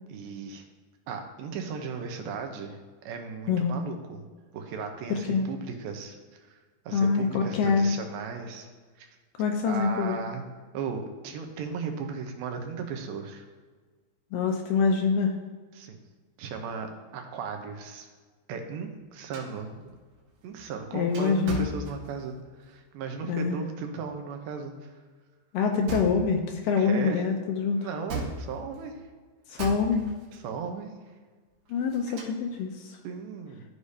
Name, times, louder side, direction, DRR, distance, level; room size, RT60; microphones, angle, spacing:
voice 1, 0.1-0.6 1.1-4.3 4.5-6.6 6.9-8.7 9.0-9.1 9.6-10.4 10.7-13.5 15.8-16.0 16.4-18.1 18.5-19.9 20.4-24.9 26.8-27.2 27.8-29.0 30.3-30.9 33.0-33.6, right 5 dB, 85° right, 4 dB, 2.7 m, -36 dB
voice 2, 3.5-3.8 5.1-5.5 6.9-7.9 9.4-10.2 14.3-15.3 20.9-21.7 23.3-23.6 25.5-27.8 29.5-30.1 31.7-33.0, left 5 dB, 80° left, 3 dB, 2.1 m, -25 dB
sound 1, 19.3-22.5 25.9-26.6 28.1-28.9 29.6-30.4 31.7-32.6, right 3 dB, 70° right, 3.1 m, -38 dB
14.0 x 4.9 x 2.7 m, 1.4 s
omnidirectional pair, 4.2 m